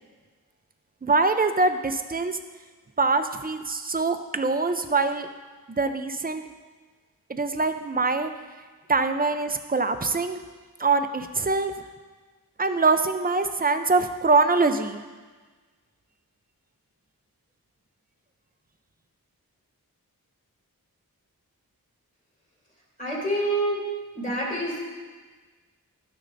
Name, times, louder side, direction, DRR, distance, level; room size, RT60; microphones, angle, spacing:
voice 1, 1.0-2.4 3.0-5.3 5.7-6.4 7.3-8.3 8.9-10.4 10.8-11.7 12.6-15.0, right 3 dB, 25° right, 8 dB, 0.5 m, -23 dB
voice 2, 23.0-23.8 24.1-24.7, right 1 dB, 20° left, -5 dB, 2.7 m, -26 dB
12.5 x 6.3 x 2.6 m, 1.4 s
wide cardioid pair, 80°, 36 cm